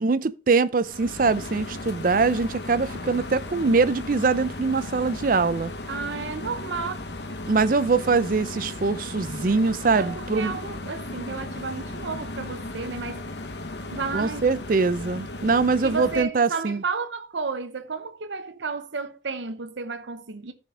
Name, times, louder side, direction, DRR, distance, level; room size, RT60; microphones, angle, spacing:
voice 1, 0.0-5.7 7.5-10.5 14.1-16.8, right 4 dB, 50° right, 0.5 m, -23 dB
sound 1, 0.8-16.2, left 2 dB, 65° left, 1.1 m, -36 dB
voice 2, 5.9-7.0 10.0-13.2 13.9-14.4 15.8-20.5, right 4 dB, 80° right, 0.8 m, -32 dB
13.5 x 5.1 x 3.7 m
head